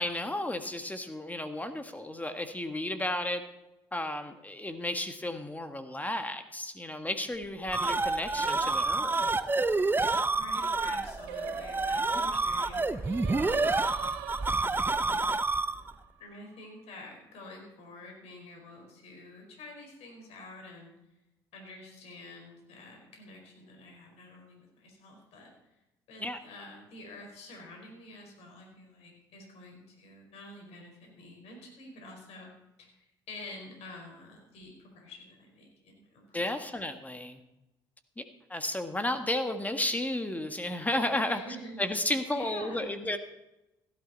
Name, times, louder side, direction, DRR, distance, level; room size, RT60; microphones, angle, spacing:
voice 1, 0.0-3.4 3.9-9.2 12.1-12.2 26.2-26.4 36.3-37.4 38.2-38.3 38.5-41.4 41.8-43.2, left 1 dB, 15° left, 7 dB, 1.7 m, -33 dB
sound 1, 7.4-15.9, right 3 dB, 20° right, 0.9 m, -28 dB
voice 2, 10.3-13.3 16.2-20.9 21.5-25.8 26.1-32.5 32.8-36.4 41.2-41.8 42.3-43.0, left 2 dB, 65° left, 2 dB, 4.7 m, -48 dB
Singing, 11.3-16.6, right 11 dB, 85° right, 1.3 m, -44 dB
16.0 x 12.0 x 4.2 m, 0.92 s
hypercardioid pair, 60°, 11 cm